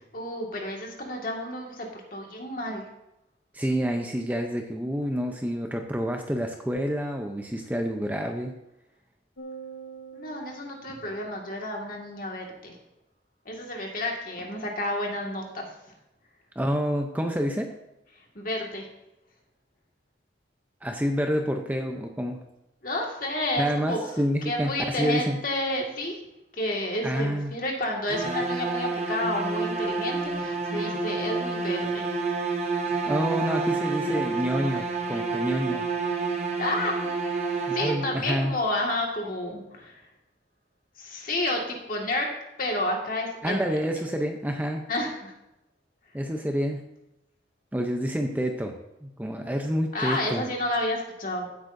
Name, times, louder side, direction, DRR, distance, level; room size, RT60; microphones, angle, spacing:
voice 1, 0.1-2.8 10.1-12.7 13.5-15.7 18.4-18.9 22.8-26.2 26.5-32.1 35.2-35.3 36.6-37.1 37.7-40.1 41.0-44.0 44.9-45.3 49.9-51.5, left 1 dB, 45° left, 0 dB, 1.9 m, -31 dB
voice 2, 3.5-8.5 16.6-17.7 20.8-22.4 23.6-25.4 27.0-27.5 32.9-35.8 37.7-38.5 43.4-44.8 46.1-46.8 47.7-48.8 49.0-50.5, equal, 10° right, 3 dB, 0.6 m, -28 dB
sound 1, 9.4-11.9, right 5 dB, 75° left, 1.0 m, -45 dB
sound 2, 28.1-38.3, right 4 dB, 35° right, 1.2 m, -29 dB
15.5 x 8.3 x 2.6 m, 0.90 s
head